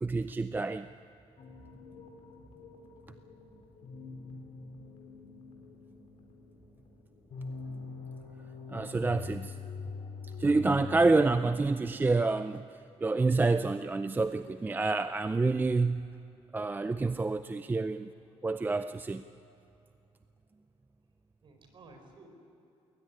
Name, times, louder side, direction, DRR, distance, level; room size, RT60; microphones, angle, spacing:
voice 1, 0.0-0.9 8.7-9.6 10.4-16.1 16.5-18.1 18.4-19.2, right 3 dB, 15° right, 11 dB, 0.5 m, -28 dB
sound 1, 1.4-12.0, left 4 dB, 60° left, 3.4 m, -44 dB
voice 2, 21.4-22.3, right 3 dB, 45° right, 5 dB, 4.5 m, -56 dB
20.0 x 19.0 x 9.8 m, 2.7 s
cardioid pair, 130°, 11 cm